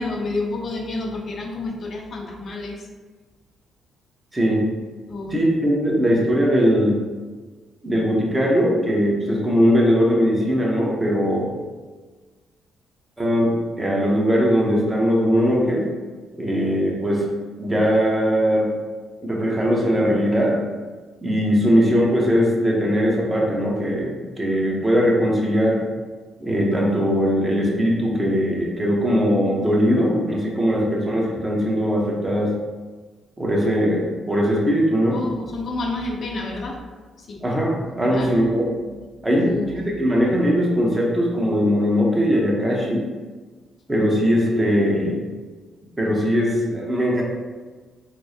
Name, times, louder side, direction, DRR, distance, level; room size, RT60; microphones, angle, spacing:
voice 1, 0.0-2.9 5.1-5.3 35.1-36.8 37.3-37.4 38.0-38.4 39.4-39.9, left 2 dB, 50° left, 0 dB, 0.5 m, -29 dB
voice 2, 4.3-4.6 5.3-7.0 7.8-11.5 13.2-15.9 16.4-17.2 17.6-18.7 19.2-20.6 21.2-25.8 26.4-32.5 33.4-35.2 37.4-38.9 39.2-43.0 43.9-45.2 46.0-47.2, equal, 15° right, -3 dB, 0.9 m, -20 dB
4.5 x 2.1 x 2.7 m, 1.4 s
cardioid pair, 90°, 0 cm